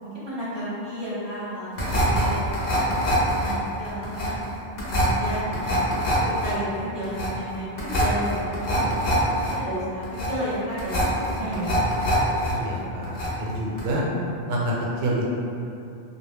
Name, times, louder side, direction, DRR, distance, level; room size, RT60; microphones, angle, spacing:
voice 1, 0.0-1.7 2.0-3.0 3.4-4.4 4.8-5.9 6.4-8.9 9.3-11.8, equal, 30° right, -11 dB, 0.6 m, -32 dB
sound 1, 1.8-12.5 12.8-13.5 13.8-13.9, equal, 60° left, 0.8 m, -25 dB
voice 2, 12.5-14.1 14.5-15.3, right 1 dB, 70° right, -4 dB, 0.8 m, -27 dB
2.2 x 2.0 x 3.3 m, 2.7 s
omnidirectional pair, 1.1 m